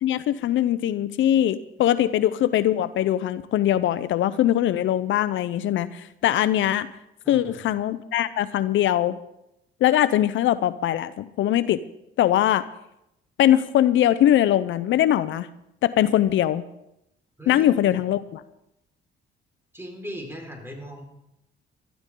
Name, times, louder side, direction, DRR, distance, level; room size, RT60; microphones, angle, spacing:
voice 1, 0.0-6.9 7.3-9.2 9.8-11.8 12.2-12.6 13.4-15.5 15.8-16.6 17.5-18.4, left 12 dB, 75° left, 14 dB, 0.6 m, -21 dB
voice 2, 7.2-7.6 17.4-18.0 19.7-21.0, equal, 10° right, 1 dB, 4.7 m, -38 dB
19.0 x 13.5 x 3.8 m, 0.84 s
cardioid pair, 90°, 20 cm